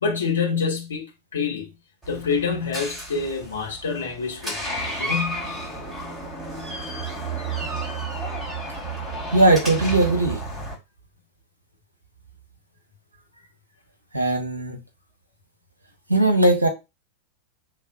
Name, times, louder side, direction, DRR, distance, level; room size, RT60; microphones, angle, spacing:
voice 1, 0.0-1.7 2.1-4.7 5.0-5.4, left 5 dB, 65° left, 1.1 m, -26 dB
Door, 2.0-10.7, right 2 dB, 15° right, 2.7 m, -31 dB
voice 2, 9.3-10.4 14.1-14.8 16.1-16.7, right 2 dB, 80° right, 1.2 m, -19 dB
5.6 x 3.5 x 2.4 m
figure-of-eight pair, 90°, 0 cm